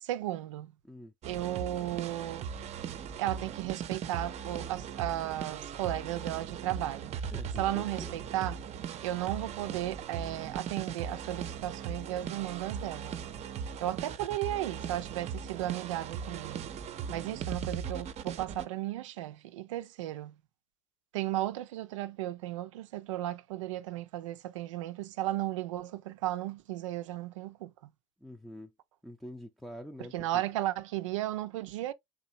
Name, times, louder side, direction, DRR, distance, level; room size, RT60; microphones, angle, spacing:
voice 1, 0.0-0.7 1.3-2.5 3.2-7.1 7.6-8.6 9.0-13.2 13.8-16.6 17.1-20.3 21.1-27.7 30.1-31.9, right 14 dB, 85° right, 0.4 m, -35 dB
sound 1, 1.2-18.6, right 7 dB, 45° right, 0.6 m, -39 dB
voice 2, 7.3-8.3 28.2-28.7 29.0-30.4, equal, ahead, 0.6 m, -46 dB
3.8 x 2.8 x 2.6 m
hypercardioid pair, 75°, 16 cm